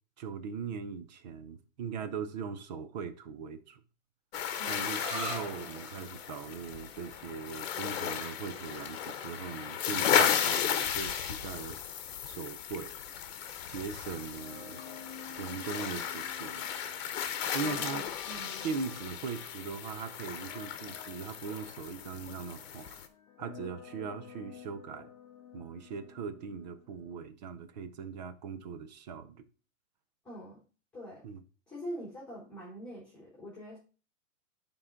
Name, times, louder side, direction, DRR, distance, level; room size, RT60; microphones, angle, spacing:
voice 1, 0.2-3.8 4.7-12.0 12.2-13.0 13.7-14.8 15.4-16.7 17.5-18.0 18.6-23.0 23.4-25.1 25.5-29.4 31.2-31.4, right 5 dB, 35° right, 0.6 m, -40 dB
sound 1, 4.3-23.1, left 9 dB, 50° left, 1.1 m, -35 dB
sound 2, 4.9-12.3, equal, 15° right, 1.9 m, -47 dB
sound 3, 14.3-27.2, left 8 dB, 25° left, 0.7 m, -52 dB
voice 2, 17.6-18.7 30.2-30.6 30.9-31.2 31.7-33.8, equal, ahead, 2.7 m, -44 dB
10.5 x 3.8 x 3.8 m
hypercardioid pair, 160°, 40 cm